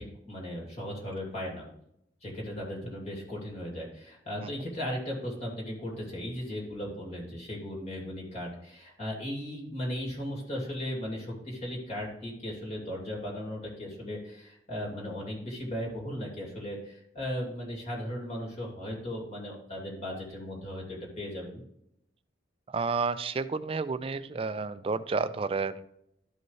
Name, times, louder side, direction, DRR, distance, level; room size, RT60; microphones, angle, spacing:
voice 1, 0.0-1.7 2.2-21.6, equal, 35° left, -2 dB, 2.5 m, -37 dB
voice 2, 22.7-25.9, right 4 dB, 30° right, 13 dB, 0.4 m, -31 dB
12.5 x 5.3 x 3.2 m, 0.78 s
head